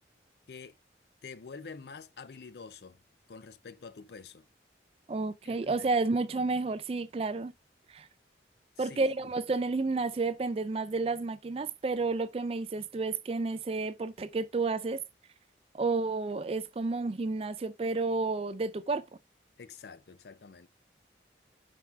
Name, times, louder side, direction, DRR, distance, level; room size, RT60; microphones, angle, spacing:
voice 1, 1.2-3.0 3.3-4.5 5.4-5.9 8.8-9.1 19.6-20.7, left 5 dB, 65° left, 0.5 m, -47 dB
voice 2, 5.1-7.5 7.9-8.1 8.8-15.0 15.7-19.0, right 3 dB, 30° right, 0.3 m, -31 dB
6.0 x 4.6 x 3.4 m
head